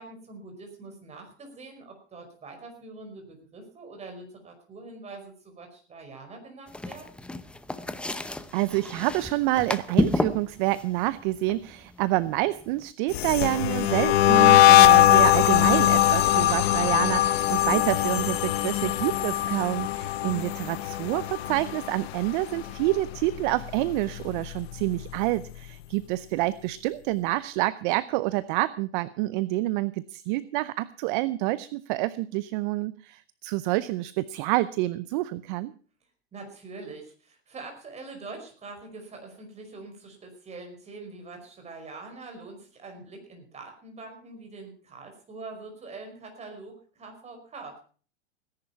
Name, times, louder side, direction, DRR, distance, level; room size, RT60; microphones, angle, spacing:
voice 1, 0.0-7.1 36.3-47.8, right 3 dB, 20° right, 4 dB, 5.1 m, -44 dB
sound 1, 6.7-12.9, left 1 dB, 5° left, 0.7 m, -31 dB
voice 2, 8.5-35.7, right 18 dB, 50° right, 17 dB, 0.7 m, -28 dB
sound 2, 13.1-22.3 22.6-23.0 23.3-24.9, left 13 dB, 65° left, 0.9 m, -21 dB
17.5 x 10.5 x 5.7 m, 0.41 s
hypercardioid pair, 130°, 34 cm